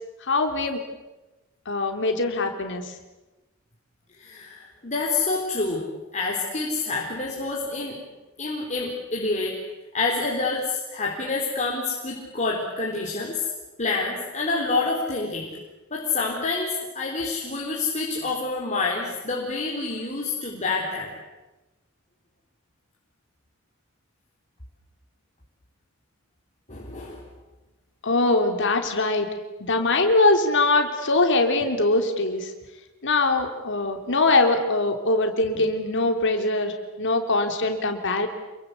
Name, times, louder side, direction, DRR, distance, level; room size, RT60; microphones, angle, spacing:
voice 1, 0.3-0.8 1.6-2.8 28.0-29.3 29.6-32.5 33.0-38.3, left 2 dB, 60° left, 5 dB, 3.5 m, -22 dB
voice 2, 4.2-5.8 6.1-8.0 8.4-9.6 9.9-13.4 13.8-15.5 15.9-21.1 26.7-27.2 35.5-35.6, left 3 dB, 35° left, -2 dB, 4.3 m, -27 dB
27.5 x 23.5 x 8.4 m, 1.1 s
head